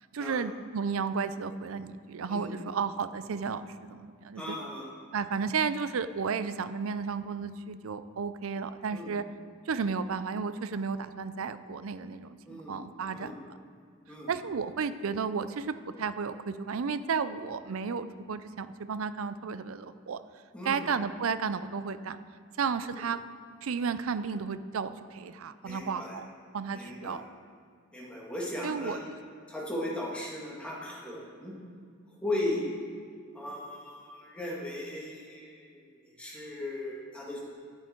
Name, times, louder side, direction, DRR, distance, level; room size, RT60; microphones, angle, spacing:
voice 1, 0.1-4.6 5.1-9.3 9.7-13.3 14.3-20.2 20.6-22.2 22.6-23.2 23.6-26.3 26.5-27.2 28.6-29.2, right 5 dB, 70° right, 13 dB, 0.5 m, -33 dB
voice 2, 2.3-2.6 4.4-4.9 8.9-9.1 12.5-13.3 14.1-14.3 20.5-20.9 25.6-26.2 26.7-27.2 27.9-29.0 29.5-31.6 32.2-32.6 33.3-37.4, left 1 dB, 5° left, -5 dB, 2.0 m, -37 dB
10.5 x 9.8 x 4.5 m, 2.1 s
head